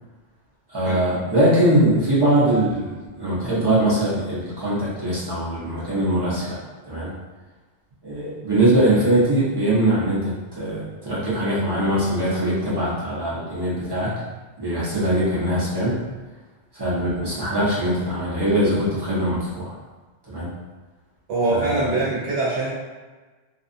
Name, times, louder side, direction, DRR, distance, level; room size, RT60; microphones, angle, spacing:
voice 1, 0.7-7.1 8.0-14.1 14.6-16.0 16.7-19.7 20.3-20.5 21.5-22.0, right 1 dB, 25° right, -9 dB, 0.7 m, -22 dB
voice 2, 21.3-22.7, right 2 dB, 75° right, -7 dB, 1.0 m, -23 dB
2.5 x 2.3 x 2.5 m, 1.3 s
omnidirectional pair, 1.2 m